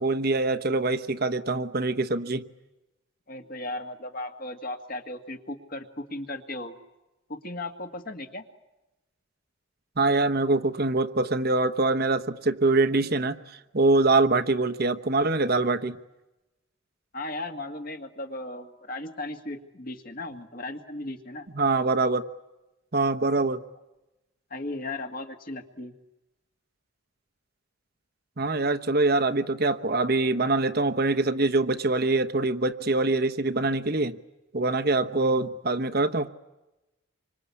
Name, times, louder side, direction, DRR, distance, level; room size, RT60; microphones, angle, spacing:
voice 1, 0.0-2.4 10.0-16.0 21.5-22.2 22.9-23.6 28.4-34.2 34.5-36.3, right 2 dB, 45° right, 8 dB, 1.1 m, -24 dB
voice 2, 3.3-6.7 7.3-8.4 17.1-21.5 24.5-25.9, left 2 dB, 45° left, 5 dB, 2.1 m, -36 dB
27.0 x 25.5 x 8.5 m, 1.0 s
head